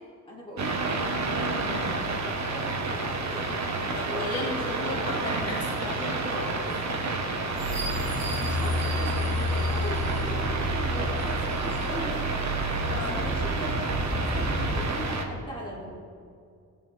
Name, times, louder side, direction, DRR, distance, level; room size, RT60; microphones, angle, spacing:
voice 1, 0.3-5.1 8.4-12.2 13.1-15.9, equal, 15° left, -6 dB, 3.8 m, -40 dB
sound 1, 0.6-15.2, right 3 dB, 60° right, 1.7 m, -30 dB
voice 2, 3.9-6.7 12.8-13.2, left 2 dB, 50° left, -5 dB, 3.3 m, -34 dB
sound 2, 7.5-14.8, equal, 25° right, 3.6 m, -30 dB
20.0 x 9.0 x 3.8 m, 2.3 s
cardioid pair, 120°, 31 cm